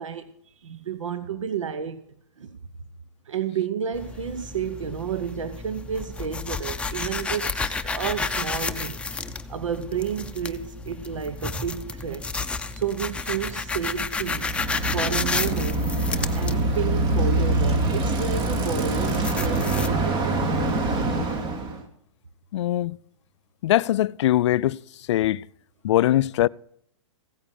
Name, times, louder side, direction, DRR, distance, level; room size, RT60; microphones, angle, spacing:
voice 1, 0.0-2.0 2.4-2.6 3.2-9.0 9.5-12.3 12.7-14.5 14.9-15.9 16.3-20.7, right 8 dB, 90° right, 0.9 m, -31 dB
sound 1, 3.9-19.9, left 4 dB, 5° left, 0.7 m, -32 dB
Bicycle, 14.3-21.8, right 2 dB, 40° right, 2.8 m, -25 dB
voice 2, 22.5-23.0 23.6-24.8 25.1-25.5 25.8-26.5, left 14 dB, 65° left, 0.4 m, -21 dB
16.0 x 8.9 x 6.6 m
hypercardioid pair, 130°, 16 cm